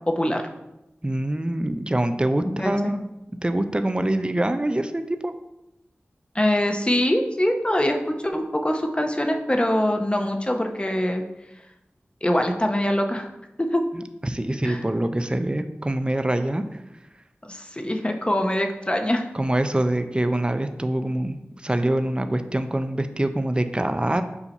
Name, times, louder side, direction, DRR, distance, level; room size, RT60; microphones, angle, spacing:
voice 1, 0.1-0.4 2.4-2.9 6.3-11.2 12.2-13.3 13.6-13.8 14.6-14.8 17.4-19.3, left 1 dB, 25° left, 4 dB, 0.8 m, -23 dB
voice 2, 1.0-3.0 3.4-5.3 13.9-16.6 19.3-21.4 21.6-24.2, right 1 dB, 20° right, 8 dB, 0.5 m, -24 dB
7.1 x 2.8 x 5.4 m, 0.90 s
wide cardioid pair, 40°, 4 cm